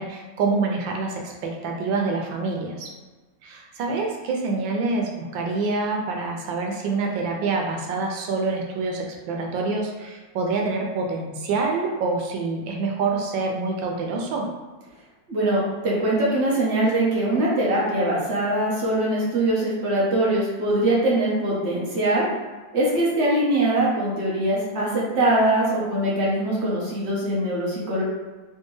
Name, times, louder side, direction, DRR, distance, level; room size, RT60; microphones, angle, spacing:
voice 1, 0.0-2.9 3.4-14.5, right 3 dB, 90° right, 1 dB, 1.4 m, -26 dB
voice 2, 15.3-22.3 22.7-28.0, right 1 dB, 45° right, -6 dB, 1.0 m, -22 dB
3.4 x 2.8 x 3.1 m, 1.3 s
omnidirectional pair, 2.0 m